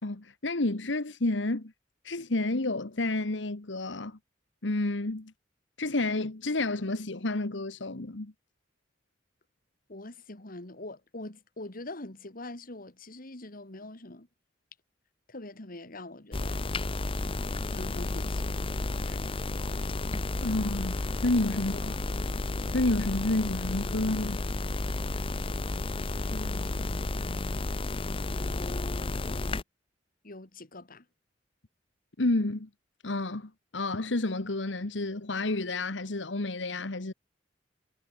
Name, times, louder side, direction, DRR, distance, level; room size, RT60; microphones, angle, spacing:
voice 1, 0.0-1.7 2.0-4.2 4.6-5.3 5.8-8.3 20.4-22.0 22.7-24.4 32.2-32.7 33.0-37.1, left 2 dB, 75° left, 1.5 m, -30 dB
voice 2, 9.9-14.3 15.3-16.6 17.7-19.4 21.6-21.8 26.3-27.4 30.2-31.1, left 2 dB, 50° left, 2.5 m, -44 dB
sound 1, 16.3-29.6, left 2 dB, 30° left, 0.7 m, -32 dB
head